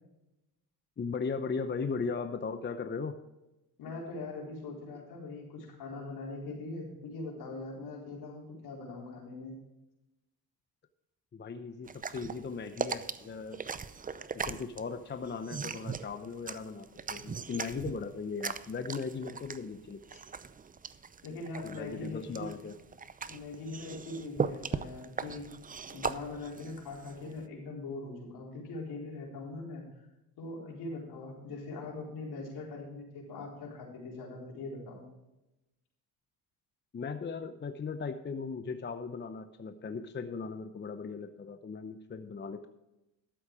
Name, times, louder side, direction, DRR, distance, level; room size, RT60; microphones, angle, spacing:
voice 1, 1.0-3.1 11.3-13.6 14.3-20.2 21.6-22.8 36.9-42.7, left 5 dB, 25° left, 8 dB, 0.8 m, -38 dB
voice 2, 3.8-9.5 21.2-22.5 23.3-25.5 25.9-30.1 30.4-35.0, left 3 dB, 70° left, -2 dB, 4.4 m, -41 dB
sound 1, 11.8-27.4, right 5 dB, 20° right, 0.5 m, -39 dB
12.5 x 7.9 x 4.9 m, 0.95 s
cardioid pair, 90°, 40 cm